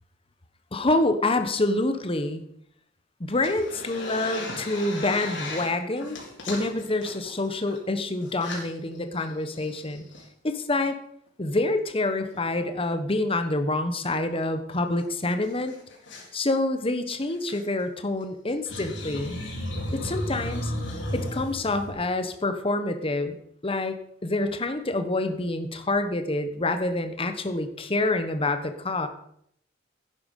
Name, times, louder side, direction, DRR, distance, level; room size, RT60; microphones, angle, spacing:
voice 1, 0.7-2.4 3.2-6.2 6.5-10.1 10.4-10.9 11.4-15.8 16.3-19.4 19.9-20.7 21.1-23.4 23.6-29.1, left 2 dB, 30° left, 8 dB, 1.2 m, -27 dB
sound 1, 3.3-5.7 6.0-7.8 8.3-8.7 9.2-9.3 9.5-10.2 12.3-12.5 14.3-14.4 14.7-14.8 15.0-15.1 15.4-16.3 17.3-17.6 18.5-21.9, left 1 dB, 70° left, 4.0 m, -34 dB
11.5 x 9.6 x 5.4 m, 0.70 s
head